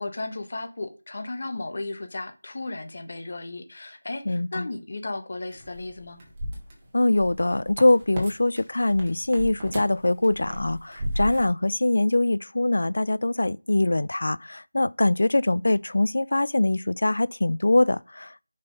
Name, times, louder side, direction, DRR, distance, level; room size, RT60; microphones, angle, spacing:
voice 1, 0.0-6.2, left 2 dB, 40° left, 1.2 m, -35 dB
voice 2, 4.3-4.7 6.9-18.4, left 2 dB, 60° left, 0.4 m, -23 dB
sound 1, 5.5-8.3 8.6-11.5, equal, 15° right, 1.4 m, -34 dB
6.0 x 5.3 x 5.2 m
figure-of-eight pair, 175°, 0 cm